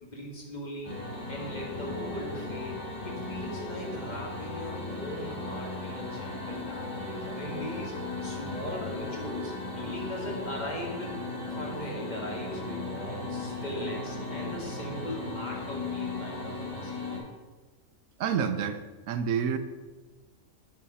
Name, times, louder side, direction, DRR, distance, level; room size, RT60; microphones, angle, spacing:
voice 1, 0.0-1.0 1.3-7.9 8.2-11.2 11.5-16.9, equal, 35° left, -1 dB, 1.7 m, -39 dB
sound 1, 0.8-17.2, left 3 dB, 55° left, 3.3 m, -37 dB
voice 2, 18.2-18.8 19.1-19.6, right 7 dB, 85° right, 9 dB, 1.1 m, -28 dB
8.4 x 4.9 x 5.5 m, 1.3 s
omnidirectional pair, 1.4 m